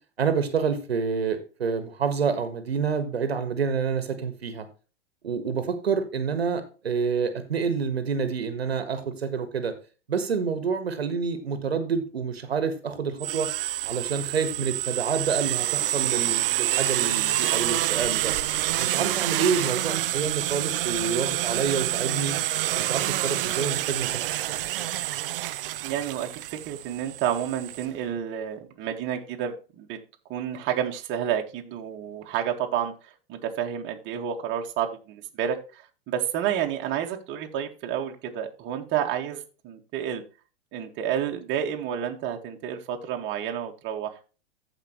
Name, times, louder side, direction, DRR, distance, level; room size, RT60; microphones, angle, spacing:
voice 1, 0.2-4.6 5.2-9.7 10.1-13.5 13.8-18.3 18.8-22.3 22.7-24.6, right 6 dB, 80° right, 9 dB, 1.6 m, -28 dB
sound 1, 13.2-27.8, right 14 dB, 65° right, 0.6 m, -27 dB
voice 2, 25.8-30.0 30.3-40.2 40.7-44.2, right 9 dB, 40° right, 3 dB, 1.8 m, -30 dB
14.5 x 5.2 x 3.1 m, 0.34 s
hypercardioid pair, 105°, 30 cm